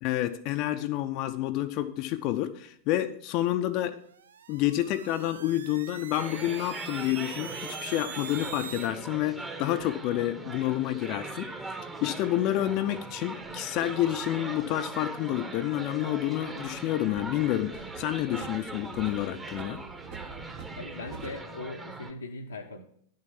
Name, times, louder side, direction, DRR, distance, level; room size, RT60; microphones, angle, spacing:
voice 1, 0.0-4.0 4.5-11.5 12.0-19.8, left 14 dB, 40° left, 9 dB, 0.6 m, -29 dB
sound 1, 4.1-8.9, right 8 dB, 65° right, 0.3 m, -43 dB
sound 2, 6.1-22.1, right 2 dB, 15° right, 1.2 m, -40 dB
sound 3, 12.3-13.6 15.8-16.8 17.1-21.4, right 7 dB, 50° right, 1.4 m, -47 dB
voice 2, 20.8-22.8, left 3 dB, 80° left, -1 dB, 0.9 m, -40 dB
10.5 x 6.6 x 5.7 m, 0.64 s
figure-of-eight pair, 90°, 0 cm